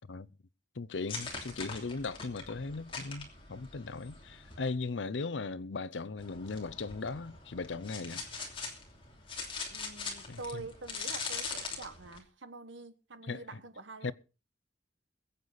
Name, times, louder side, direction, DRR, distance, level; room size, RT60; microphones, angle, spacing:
voice 1, 0.8-8.2 10.3-10.7 13.3-13.4 14.0-14.1, left 3 dB, 80° left, 0.7 m, -38 dB
sound 1, 1.1-4.6 6.2-12.2, left 4 dB, 30° left, 2.9 m, -42 dB
voice 2, 9.7-14.1, right 3 dB, 80° right, 1.3 m, -46 dB
22.0 x 8.1 x 4.1 m
head